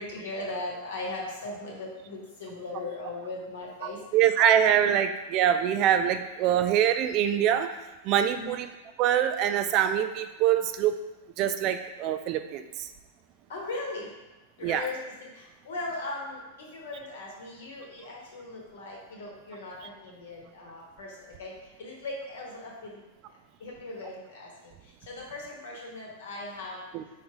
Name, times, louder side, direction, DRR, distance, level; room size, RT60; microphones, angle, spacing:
voice 1, 0.0-4.0 4.9-5.0 8.3-8.5 13.5-14.1 14.6-23.0 23.6-26.8, left 2 dB, 75° left, -2 dB, 1.2 m, -38 dB
voice 2, 4.1-7.7 8.0-8.7 9.0-10.9 11.4-12.9 14.6-14.9 26.9-27.0, right 10 dB, 45° right, 9 dB, 0.3 m, -24 dB
4.1 x 3.4 x 2.9 m, 1.1 s
hypercardioid pair, 110°, 0 cm